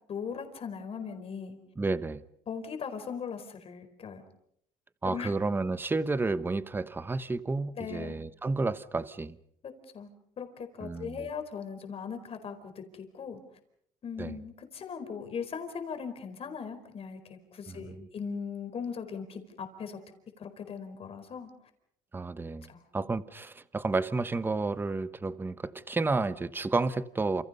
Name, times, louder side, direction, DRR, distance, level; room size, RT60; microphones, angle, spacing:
voice 1, 0.1-1.6 2.5-4.2 5.0-5.3 7.8-8.1 9.6-10.1 10.4-13.4 14.0-20.0 20.4-21.5 22.7-22.8, left 6 dB, 40° left, 4.6 m, -39 dB
voice 2, 1.8-2.2 5.0-9.3 10.8-11.3 14.2-14.4 17.7-18.1 22.1-22.7 22.9-27.4, right 3 dB, 15° right, 1.0 m, -31 dB
29.0 x 28.0 x 5.5 m
cardioid pair, 135°, 16 cm